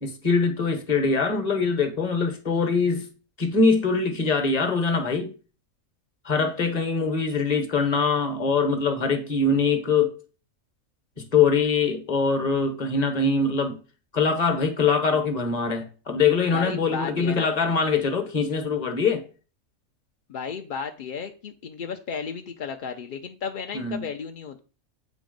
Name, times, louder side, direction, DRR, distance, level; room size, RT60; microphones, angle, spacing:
voice 1, 0.0-3.1 3.4-5.3 6.2-10.2 11.2-13.8 14.1-19.2 23.7-24.0, left 4 dB, 35° left, 1.0 m, -23 dB
voice 2, 16.5-17.6 20.3-24.6, left 6 dB, 60° left, 0.5 m, -34 dB
8.3 x 3.1 x 5.1 m
omnidirectional pair, 1.4 m